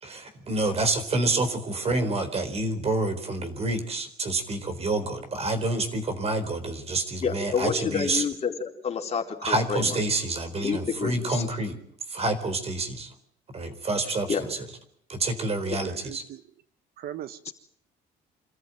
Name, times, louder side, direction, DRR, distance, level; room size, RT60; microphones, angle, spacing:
voice 1, 0.0-8.2 9.4-11.8 12.1-13.1 13.5-14.3 15.1-16.2, right 2 dB, 35° right, 9 dB, 4.2 m, -28 dB
voice 2, 7.2-10.0 10.6-11.4 14.3-14.4, left 6 dB, 40° left, 2 dB, 4.2 m, -29 dB
voice 3, 15.8-16.4 17.0-17.5, right 11 dB, 65° right, 13 dB, 1.2 m, -39 dB
26.0 x 14.5 x 9.2 m, 0.67 s
cardioid pair, 110°, 17 cm